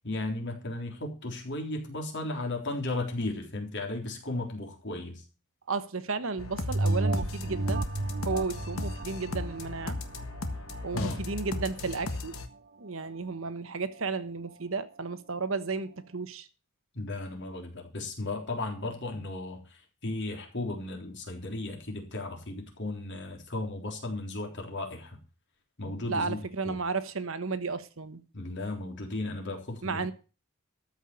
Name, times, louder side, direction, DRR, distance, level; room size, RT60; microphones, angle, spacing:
voice 1, 0.0-5.2 10.9-11.2 16.9-25.2 25.8-26.8 28.3-30.1, left 2 dB, 55° left, 3.7 m, -35 dB
voice 2, 5.7-7.8 8.2-10.0 10.8-12.3 12.8-16.5 26.1-28.2 29.8-30.1, right 4 dB, 65° right, 1.2 m, -33 dB
sound 1, 6.4-12.5, left 2 dB, 70° left, 1.6 m, -37 dB
sound 2, 6.7-11.6 12.1-12.2, right 2 dB, 45° right, 0.7 m, -33 dB
13.5 x 5.7 x 8.5 m
head